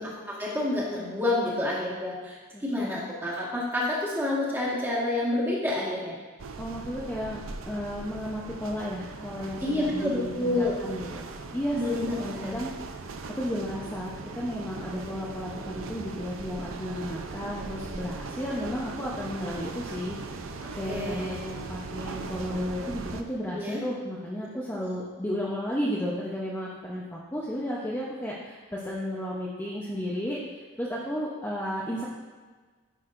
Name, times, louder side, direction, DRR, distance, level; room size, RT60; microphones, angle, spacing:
voice 1, 0.0-6.1 9.6-10.7 11.7-12.5 20.6-21.3 23.5-23.8 24.8-25.0, left 1 dB, 10° right, -6 dB, 1.6 m, -29 dB
voice 2, 2.5-2.9 6.6-7.4 7.7-12.7 13.4-20.2 20.7-30.4 30.8-32.1, equal, 10° left, -6 dB, 0.7 m, -33 dB
sound 1, 6.4-23.2, right 4 dB, 75° right, 0.5 m, -39 dB
9.9 x 6.1 x 2.5 m, 1.4 s
head